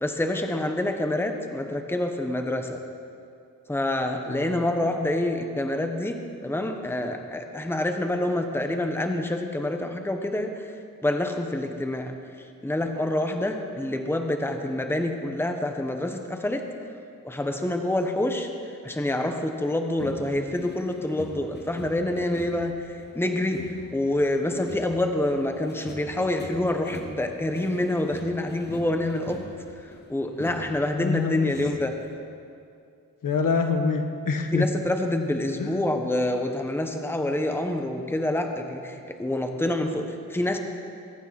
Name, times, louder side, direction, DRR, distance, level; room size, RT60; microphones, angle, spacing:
voice 1, 0.0-2.8 3.7-10.7 11.0-12.1 12.6-16.6 17.2-18.5 18.8-29.4 30.1-31.9 34.5-40.6, left 1 dB, 5° left, 5 dB, 1.1 m, -27 dB
voice 2, 4.3-4.7 30.9-31.5 33.2-34.7 35.6-35.9, left 4 dB, 70° left, 5 dB, 1.4 m, -26 dB
sound 1, 20.0-32.1, left 2 dB, 30° left, 1.2 m, -44 dB
22.0 x 9.2 x 5.9 m, 2.4 s
wide cardioid pair, 105°, 34 cm